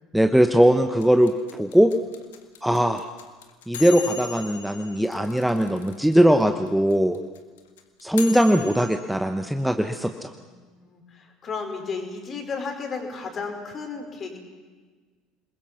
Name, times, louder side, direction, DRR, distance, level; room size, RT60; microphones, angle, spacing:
voice 1, 0.1-1.9 2.6-3.0 3.7-7.2 8.0-10.3, equal, ahead, 7 dB, 1.1 m, -20 dB
sound 1, 1.0-6.1 6.4-6.5 6.7-9.0, left 8 dB, 70° left, 1.8 m, -37 dB
voice 2, 10.3-14.4, left 4 dB, 35° left, 4 dB, 4.6 m, -34 dB
28.5 x 21.0 x 6.0 m, 1.4 s
figure-of-eight pair, 65°, 0 cm